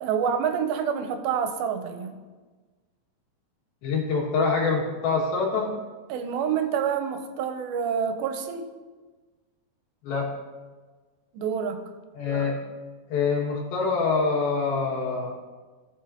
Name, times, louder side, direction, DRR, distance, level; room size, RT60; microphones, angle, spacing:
voice 1, 0.0-2.2 6.1-8.7 11.3-11.8, right 7 dB, 90° right, 7 dB, 2.6 m, -27 dB
voice 2, 3.8-5.7 10.0-10.3 12.2-12.6 13.1-15.3, left 4 dB, 80° left, -2 dB, 3.7 m, -25 dB
17.0 x 6.8 x 2.8 m, 1.4 s
omnidirectional pair, 4.3 m